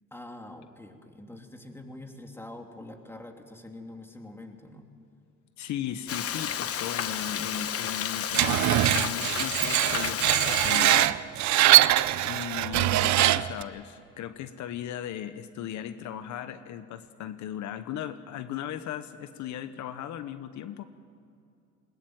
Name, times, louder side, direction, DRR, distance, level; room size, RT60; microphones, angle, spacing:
voice 1, 0.1-4.9, left 1 dB, 10° left, 3 dB, 2.9 m, -45 dB
voice 2, 5.6-11.2 11.5-11.9 12.2-20.8, left 10 dB, 70° left, 11 dB, 1.1 m, -37 dB
Frying (food), 6.1-11.1, left 9 dB, 50° left, 1.2 m, -32 dB
Screech, 8.3-13.6, right 15 dB, 65° right, 0.7 m, -22 dB
21.0 x 20.5 x 9.1 m, 2.6 s
cardioid pair, 95°, 30 cm